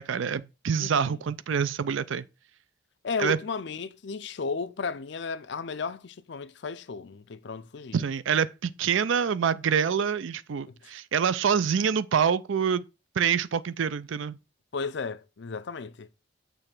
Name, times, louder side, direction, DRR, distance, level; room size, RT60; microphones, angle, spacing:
voice 1, 0.0-2.3 3.2-3.4 7.9-12.8 13.2-14.4, right 7 dB, 70° right, 0.4 m, -26 dB
voice 2, 0.8-1.2 3.0-8.0 10.7-10.9 14.7-16.1, left 4 dB, 55° left, 0.5 m, -34 dB
6.9 x 3.2 x 6.0 m
head